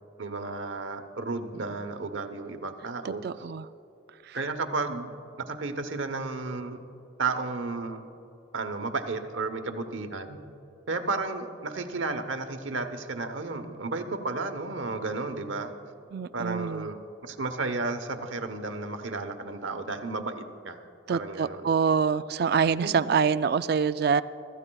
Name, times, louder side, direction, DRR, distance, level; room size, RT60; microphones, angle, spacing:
voice 1, 0.2-3.2 4.3-5.1 5.5-6.8 7.2-8.0 8.5-10.4 10.9-15.7 16.3-20.8 21.1-21.7 22.8-23.1, right 3 dB, 75° right, 7 dB, 0.9 m, -33 dB
voice 2, 3.0-3.7 4.3-4.4 16.1-16.9 21.1-24.2, right 6 dB, 55° right, 14 dB, 0.3 m, -25 dB
24.0 x 14.0 x 2.3 m, 2.8 s
head